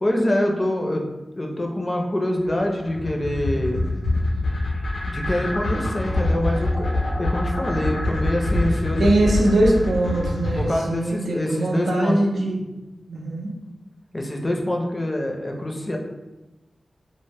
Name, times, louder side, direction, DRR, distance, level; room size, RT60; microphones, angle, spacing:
voice 1, 0.0-1.0 1.4-3.8 5.1-9.1 10.6-12.4 14.1-16.0, left 1 dB, 35° left, 1 dB, 0.5 m, -25 dB
sound 1, 2.4-10.7, left 1 dB, 80° left, 0.6 m, -25 dB
voice 2, 9.0-12.5 13.1-13.5, right 1 dB, 85° right, -2 dB, 0.5 m, -21 dB
2.1 x 2.1 x 3.3 m, 1.0 s
cardioid pair, 50°, 0 cm